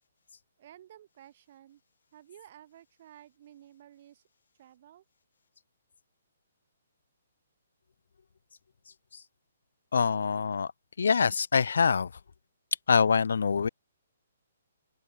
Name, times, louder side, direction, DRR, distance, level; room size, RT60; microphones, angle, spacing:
voice 1, 0.6-1.8 2.1-4.2 4.6-5.0, right 11 dB, 40° right, 5.8 m, -53 dB
voice 2, 9.9-10.7 11.0-12.1 12.9-13.7, left 6 dB, 80° left, 0.8 m, -24 dB
open air
hypercardioid pair, 165°, 0 cm